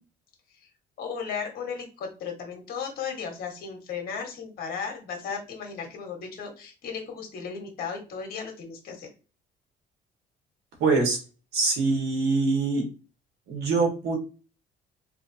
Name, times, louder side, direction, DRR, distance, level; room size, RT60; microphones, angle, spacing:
voice 1, 1.0-9.1, left 6 dB, 60° left, 2 dB, 1.4 m, -35 dB
voice 2, 10.8-11.2 11.5-12.8 13.5-14.2, right 3 dB, 75° right, 1 dB, 1.6 m, -24 dB
3.3 x 2.8 x 2.7 m, 0.34 s
cardioid pair, 110°, 17 cm